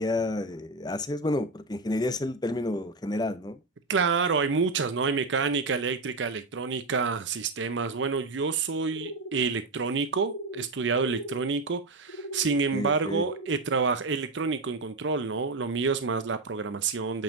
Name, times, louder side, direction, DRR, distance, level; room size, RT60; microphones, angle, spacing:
voice 1, 0.0-3.6 12.7-13.2, left 2 dB, 20° left, 0.5 m, -30 dB
voice 2, 3.9-17.2, right 4 dB, 75° right, 0.6 m, -28 dB
sound 1, 8.9-9.4 10.2-10.7 10.9-11.4 12.1-12.5 13.1-13.6, left 1 dB, 75° left, 1.1 m, -38 dB
8.8 x 5.4 x 2.5 m
head